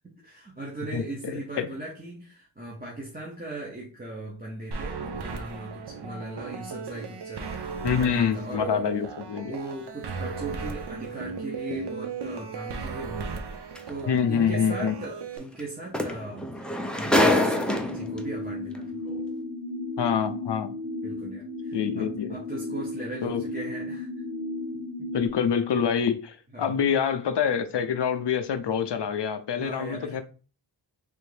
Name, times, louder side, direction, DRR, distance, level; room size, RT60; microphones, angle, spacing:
voice 1, 0.2-8.8 9.5-13.4 13.9-18.9 21.0-24.1 25.0-25.1 26.5-26.8 29.6-30.2, right 1 dB, 20° right, -3 dB, 0.8 m, -38 dB
voice 2, 0.9-1.7 7.8-9.5 14.1-14.9 20.0-20.7 21.7-22.4 23.2-23.4 25.1-30.2, left 7 dB, 70° left, 9 dB, 0.6 m, -26 dB
sound 1, 4.7-15.4, right 5 dB, 65° right, 0.6 m, -36 dB
sound 2, 13.8-13.9 15.6-15.7 15.9-18.2 19.1-19.2, left 1 dB, ahead, 0.3 m, -24 dB
sound 3, 17.7-25.3, left 2 dB, 40° right, 1.1 m, -34 dB
3.4 x 2.6 x 3.2 m, 0.36 s
wide cardioid pair, 95°, 44 cm